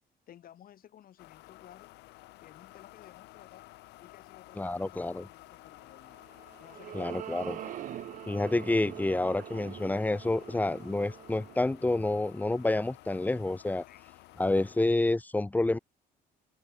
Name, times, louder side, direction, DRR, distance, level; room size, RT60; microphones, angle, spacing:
voice 1, 0.3-1.9 2.4-3.7 4.0-6.2 6.6-7.8 13.9-14.0, left 11 dB, 60° left, 5.9 m, -55 dB
sound 1, 1.2-14.8, left 20 dB, 90° left, 2.8 m, -53 dB
voice 2, 4.5-5.3 6.9-7.6 8.3-13.8 14.4-15.8, left 2 dB, 10° left, 1.0 m, -28 dB
sound 2, 6.1-12.7, right 12 dB, 50° right, 0.5 m, -44 dB
open air
cardioid pair, 110°, 17 cm